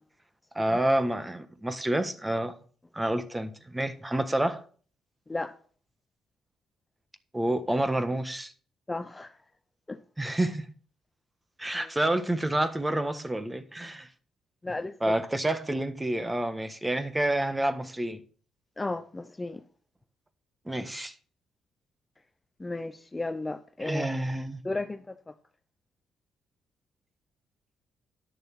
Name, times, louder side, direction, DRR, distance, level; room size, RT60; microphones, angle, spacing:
voice 1, 0.5-2.6 2.9-4.6 7.3-8.5 10.2-10.6 11.6-14.1 15.0-18.2 20.7-21.1 23.8-24.6, right 1 dB, 15° right, 1.4 m, -28 dB
voice 2, 8.9-9.3 9.9-10.0 11.7-11.8 14.6-15.1 18.8-19.6 22.6-24.1 24.6-25.2, left 2 dB, 20° left, 0.7 m, -34 dB
11.0 x 6.7 x 5.9 m
cardioid pair, 90°, 0 cm